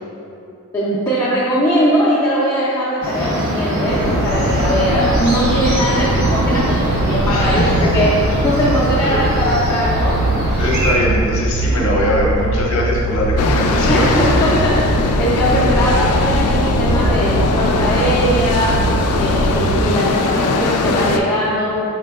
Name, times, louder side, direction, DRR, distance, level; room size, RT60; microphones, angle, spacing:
voice 1, 0.7-7.6 7.9-8.1 8.4-10.2 13.9-18.8 19.2-22.0, equal, 15° left, -11 dB, 0.5 m, -20 dB
sound 1, 3.0-10.9, equal, 50° right, 0.7 m, -21 dB
sound 2, 3.8-20.1, right 2 dB, 75° right, 0.3 m, -21 dB
voice 2, 7.2-8.1 9.0-9.3 10.6-14.2, equal, 60° left, -3 dB, 0.8 m, -20 dB
sound 3, 13.4-21.2, left 3 dB, 85° left, 0.3 m, -19 dB
5.0 x 3.8 x 2.3 m, 2.6 s
head